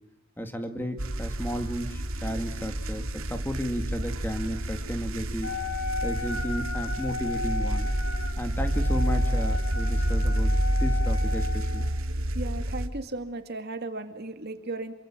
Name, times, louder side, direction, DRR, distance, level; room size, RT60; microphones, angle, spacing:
voice 1, 0.4-5.5 6.0-7.9 8.4-11.9, equal, 10° left, 7 dB, 2.0 m, -33 dB
sound 1, 1.0-12.9, right 1 dB, 65° right, 2.4 m, -28 dB
Wind instrument woodwind instrument, 5.4-11.9, left 3 dB, 60° left, 5.5 m, -35 dB
voice 2, 12.3-14.9, right 2 dB, 45° right, 8 dB, 2.2 m, -35 dB
27.5 x 24.5 x 7.4 m, 0.99 s
head